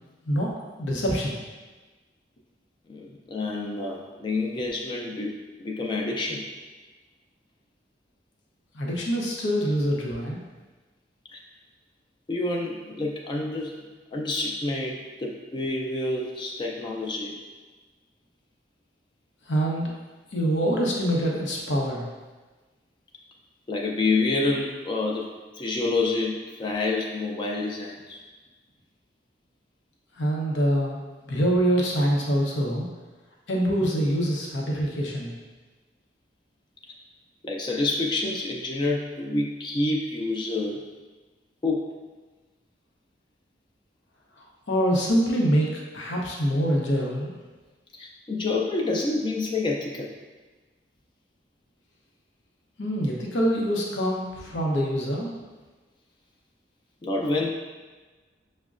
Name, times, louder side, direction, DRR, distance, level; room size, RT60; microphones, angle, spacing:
voice 1, 0.8-1.4 8.7-10.4 19.5-19.9 20.3-22.1 30.2-31.0 31.3-32.9 33.5-35.3 44.4-47.3 52.8-55.3, equal, 90° left, -2 dB, 0.7 m, -25 dB
voice 2, 2.9-6.5 11.3-11.4 12.3-13.7 14.1-17.4 23.7-25.3 25.5-28.2 37.4-40.8 41.6-41.9 47.9-50.1 57.0-57.5, left 2 dB, 25° left, -1 dB, 0.3 m, -28 dB
6.1 x 2.1 x 2.4 m, 1.3 s
head